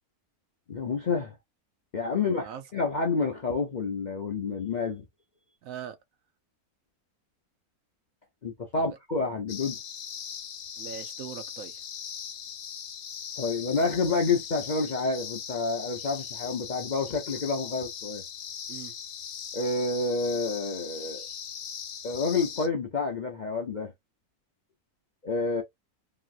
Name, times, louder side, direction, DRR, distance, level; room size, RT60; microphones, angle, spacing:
voice 1, 0.7-1.4 1.9-2.5 2.7-5.1 8.4-9.8 13.4-18.2 19.5-21.3 22.0-23.9 25.2-25.6, left 4 dB, 50° left, 0.5 m, -29 dB
voice 2, 2.2-2.6 5.6-6.0 8.8-9.0 10.8-11.8 18.7-18.9, right 9 dB, 70° right, 0.9 m, -41 dB
sound 1, 9.5-22.7, left 8 dB, 70° left, 1.0 m, -40 dB
3.0 x 2.8 x 2.4 m
omnidirectional pair, 1.6 m